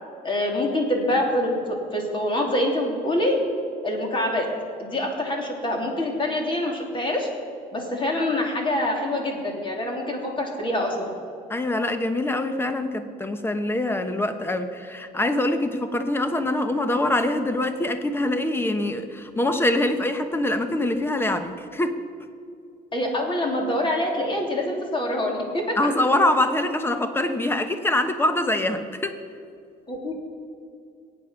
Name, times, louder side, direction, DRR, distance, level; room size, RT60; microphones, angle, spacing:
voice 1, 0.2-3.4 3.8-4.5 4.8-7.3 7.7-11.0 22.9-25.8 29.9-30.1, left 1 dB, 30° left, 0 dB, 3.2 m, -25 dB
voice 2, 11.5-22.0 25.8-29.2, left 1 dB, 15° left, 8 dB, 1.1 m, -24 dB
22.5 x 9.0 x 5.8 m, 2.4 s
cardioid pair, 110°, 17 cm